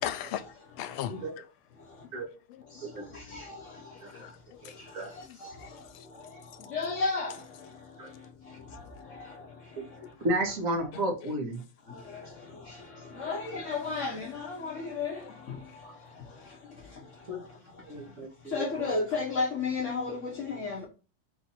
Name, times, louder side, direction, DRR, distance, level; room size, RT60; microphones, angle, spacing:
voice 1, 0.0-0.5 0.8-1.4 2.5-2.6 3.8-4.8 5.2-5.7 10.9-11.3, left 11 dB, 85° left, 1.4 m, -38 dB
voice 2, 3.1-3.6 5.4-5.5 6.7-7.4 8.7-8.8 12.1-12.2 12.7-12.8 13.1-15.6 18.5-20.8, left 4 dB, 55° left, 0.8 m, -32 dB
voice 3, 10.2-11.6 17.3-17.4 17.9-18.7, right 1 dB, 45° right, 1.4 m, -32 dB
4.5 x 2.6 x 4.1 m
omnidirectional pair, 2.3 m